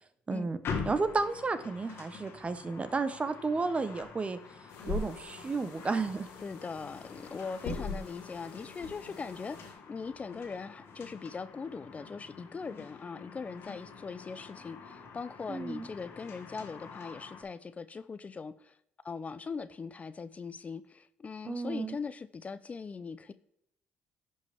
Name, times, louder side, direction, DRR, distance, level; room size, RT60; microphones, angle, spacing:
voice 1, 0.3-0.6 0.8-4.4 4.9-6.3 15.5-15.9 21.5-22.0, right 4 dB, 25° right, 12 dB, 0.8 m, -32 dB
sound 1, 0.6-17.4, left 5 dB, 60° left, 1.5 m, -46 dB
sound 2, 4.7-9.7, left 4 dB, 90° left, 2.2 m, -42 dB
voice 2, 6.4-18.8 19.0-23.3, left 5 dB, 30° left, 14 dB, 0.4 m, -40 dB
10.5 x 5.3 x 3.4 m, 0.76 s
supercardioid pair, 80°, 4 cm